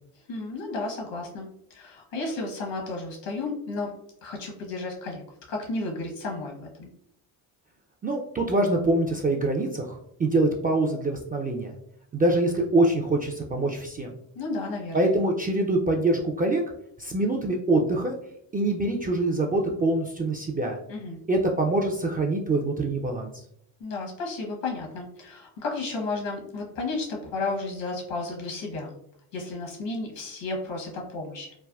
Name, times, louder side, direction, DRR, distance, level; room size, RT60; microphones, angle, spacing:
voice 1, 0.3-3.9 4.2-5.2 5.5-6.9 14.3-15.1 20.9-21.2 23.8-28.9 29.3-31.5, left 3 dB, 65° left, 0 dB, 1.1 m, -33 dB
voice 2, 8.0-11.7 12.1-14.1 14.9-16.6 17.0-18.1 18.5-20.8 21.3-23.4, right 2 dB, 20° right, 1 dB, 0.3 m, -24 dB
3.3 x 2.2 x 2.3 m, 0.72 s
hypercardioid pair, 55°, 48 cm